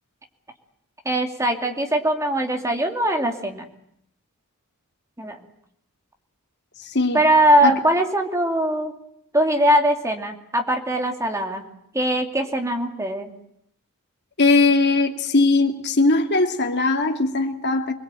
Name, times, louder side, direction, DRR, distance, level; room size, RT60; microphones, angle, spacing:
voice 1, 1.0-3.7 5.2-5.4 7.1-8.9 9.3-11.7 11.9-13.3, right 1 dB, 15° right, 2.7 m, -21 dB
voice 2, 6.8-7.2 7.6-7.8 14.4-17.9, left 3 dB, 50° left, 2.6 m, -19 dB
25.5 x 21.5 x 9.1 m
head